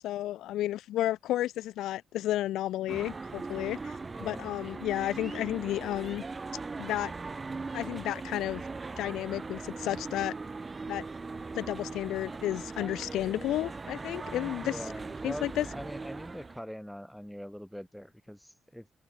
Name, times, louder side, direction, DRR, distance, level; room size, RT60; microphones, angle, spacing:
voice 1, 0.0-6.2 6.8-7.1 7.7-8.6 9.0-10.3 10.9-11.0 11.5-14.8 15.2-15.6, left 14 dB, 85° left, 1.1 m, -32 dB
sound 1, 2.9-16.6, right 3 dB, 25° right, 4.9 m, -40 dB
voice 2, 4.1-4.5 14.6-18.9, equal, ahead, 4.3 m, -43 dB
cardioid pair, 90°, 0 cm